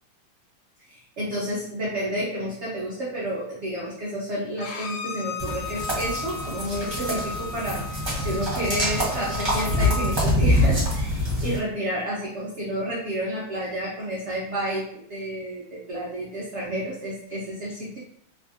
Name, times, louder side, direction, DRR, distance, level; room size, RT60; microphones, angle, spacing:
voice 1, 0.9-18.0, right 1 dB, 70° right, -6 dB, 0.6 m, -30 dB
Bowed string instrument, 4.6-10.2, left 4 dB, 75° left, 0.8 m, -36 dB
sound 1, 5.4-11.6, left 1 dB, 25° right, 0.6 m, -25 dB
3.3 x 2.5 x 2.5 m, 0.70 s
omnidirectional pair, 2.1 m